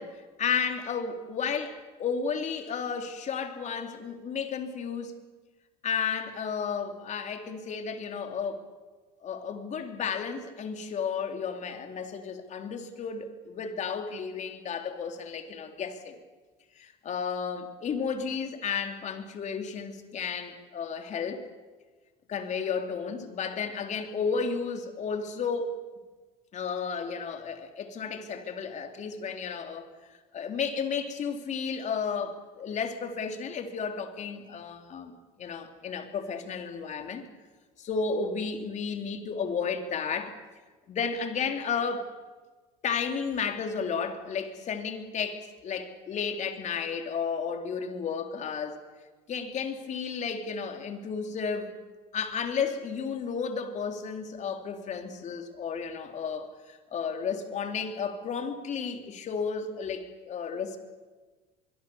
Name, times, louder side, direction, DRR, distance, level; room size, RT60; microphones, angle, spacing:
voice 1, 0.0-5.1 5.8-8.6 9.2-16.2 16.8-21.4 22.3-25.8 26.5-29.9 30.3-35.1 35.4-37.2 37.8-40.3 40.9-42.1 42.8-48.8 49.3-51.8 52.1-60.8, left 6 dB, 45° left, 5 dB, 3.6 m, -33 dB
24.0 x 23.0 x 7.2 m, 1.3 s
supercardioid pair, 95°, 17 cm